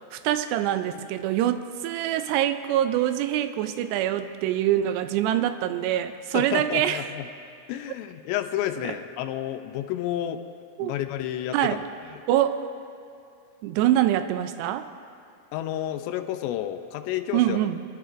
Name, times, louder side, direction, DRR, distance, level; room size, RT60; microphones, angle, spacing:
voice 1, 0.1-7.0 10.8-10.9 11.5-11.8 12.3-12.7 13.6-14.9 17.3-17.8, right 12 dB, 85° right, 10 dB, 2.6 m, -24 dB
voice 2, 6.3-7.3 7.7-10.4 10.8-11.8 15.5-17.7, left 12 dB, 85° left, 7 dB, 2.9 m, -30 dB
28.0 x 11.5 x 2.5 m, 2.5 s
omnidirectional pair, 5.0 m